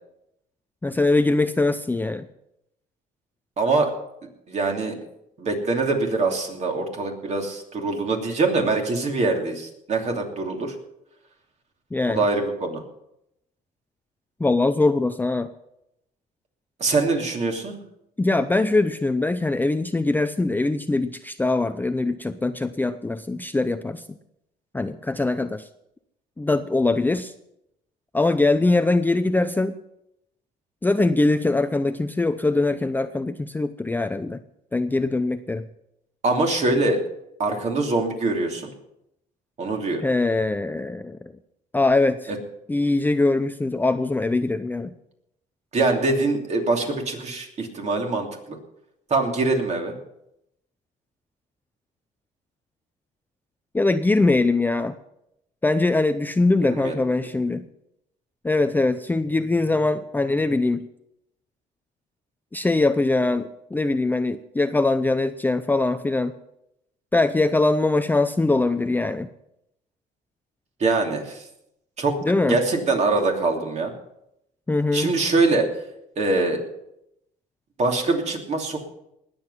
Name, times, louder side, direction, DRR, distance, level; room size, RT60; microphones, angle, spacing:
voice 1, 0.8-2.3 11.9-12.2 14.4-15.5 18.2-24.0 24.7-25.7 26.4-27.3 28.1-29.8 30.8-34.4 34.7-35.7 40.0-41.3 41.7-42.3 42.7-44.9 53.7-55.0 55.6-57.6 58.4-60.9 62.5-66.3 67.1-69.3 72.2-72.6 74.7-75.1, left 2 dB, 10° left, 10 dB, 0.5 m, -22 dB
voice 2, 3.6-3.9 4.5-4.9 5.4-10.7 12.1-12.8 16.8-17.8 36.2-37.0 37.4-38.7 39.6-40.0 42.3-42.4 45.7-48.6 49.1-49.9 56.6-56.9 70.8-71.4 72.0-72.2 72.5-73.9 74.9-75.7 76.2-76.6 77.8-78.8, right 3 dB, 40° right, 2 dB, 2.9 m, -23 dB
20.0 x 7.9 x 5.6 m, 0.81 s
cardioid pair, 110°, 17 cm